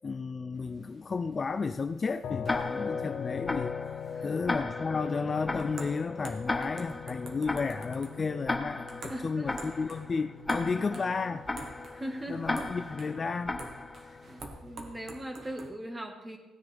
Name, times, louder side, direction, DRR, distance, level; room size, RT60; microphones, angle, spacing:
voice 1, 0.0-3.7 4.2-8.9 9.2-11.4 12.3-13.5, left 4 dB, 30° left, 9 dB, 0.4 m, -32 dB
sound 1, 0.5-15.7, right 3 dB, 45° right, 1.5 m, -49 dB
sound 2, 2.2-15.2, left 6 dB, 60° left, 0.7 m, -41 dB
Tick-tock, 2.5-14.3, left 2 dB, 15° left, 0.8 m, -37 dB
voice 2, 9.1-9.5 10.9-11.0 11.9-12.6 14.3-16.4, right 1 dB, 15° right, 3 dB, 1.6 m, -40 dB
16.5 x 9.5 x 3.5 m, 1.1 s
cardioid pair, 130°, 0 cm